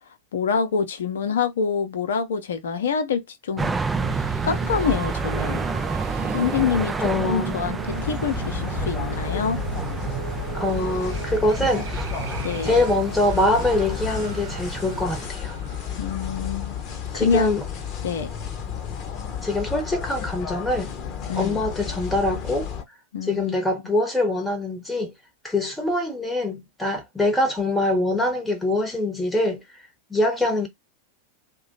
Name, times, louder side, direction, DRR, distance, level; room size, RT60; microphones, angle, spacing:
voice 1, 0.3-3.7 4.4-5.6 6.3-6.9 7.3-9.6 12.4-12.8 16.0-16.8 17.1-17.5 18.0-18.3 21.3-21.6 23.1-23.5, left 6 dB, 60° left, 0.7 m, -26 dB
sound 1, 3.6-15.3, right 4 dB, 15° right, 0.3 m, -30 dB
sound 2, 4.0-16.7, right 6 dB, 60° right, 0.7 m, -36 dB
voice 2, 7.0-7.6 10.5-12.1 12.6-15.6 17.1-17.6 19.4-20.9 21.3-22.7 23.2-25.1 25.4-29.6 30.1-30.7, left 1 dB, 5° left, 0.9 m, -24 dB
sound 3, 7.9-22.8, left 8 dB, 35° left, 0.8 m, -32 dB
2.8 x 2.3 x 3.9 m
figure-of-eight pair, 90°, 0 cm